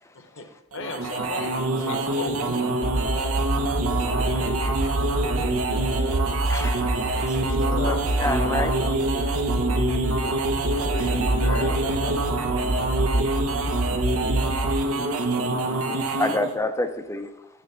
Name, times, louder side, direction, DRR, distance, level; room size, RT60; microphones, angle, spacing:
voice 1, 0.1-2.7 6.5-8.8, left 3 dB, 60° left, 7 dB, 1.0 m, -37 dB
sound 1, 0.7-16.6, right 2 dB, 75° right, 0.9 m, -26 dB
sound 2, 2.8-14.8, right 1 dB, 35° right, 0.5 m, -27 dB
voice 2, 3.5-4.6 10.7-12.2, left 2 dB, 75° left, 5 dB, 1.3 m, -35 dB
voice 3, 6.3-8.7 9.0-9.5 15.6-17.5, left 1 dB, 15° left, 8 dB, 0.5 m, -30 dB
9.2 x 3.4 x 6.8 m, 0.86 s
head